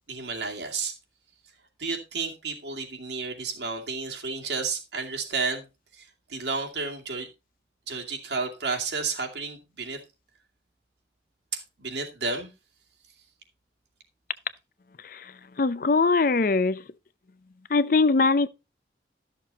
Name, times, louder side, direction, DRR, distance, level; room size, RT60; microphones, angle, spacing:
voice 1, 0.1-0.9 1.8-5.7 5.9-7.3 7.9-10.0 11.5-12.5, right 4 dB, 75° right, 2.4 m, -32 dB
voice 2, 15.0-16.8 17.7-18.5, left 3 dB, 50° left, 0.5 m, -22 dB
12.5 x 6.7 x 4.1 m
head